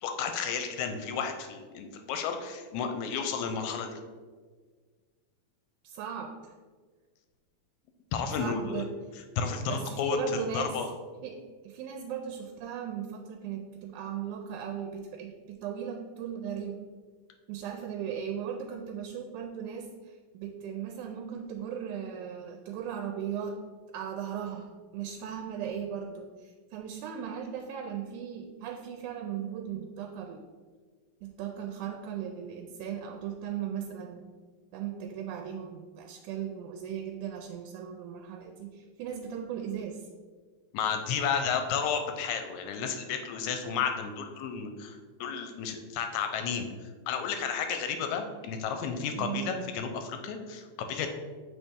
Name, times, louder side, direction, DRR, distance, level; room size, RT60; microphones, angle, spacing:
voice 1, 0.0-4.0 8.1-8.8 9.4-10.9 40.7-46.7 47.1-51.1, left 6 dB, 80° left, 6 dB, 1.8 m, -32 dB
voice 2, 5.8-6.5 8.4-8.9 9.7-10.8 11.2-11.4 11.6-16.8 17.5-23.6 23.9-30.4 31.2-34.3 34.7-40.0 49.1-49.6, right 8 dB, 80° right, 4 dB, 2.0 m, -37 dB
7.1 x 4.1 x 3.5 m, 1.5 s
omnidirectional pair, 3.6 m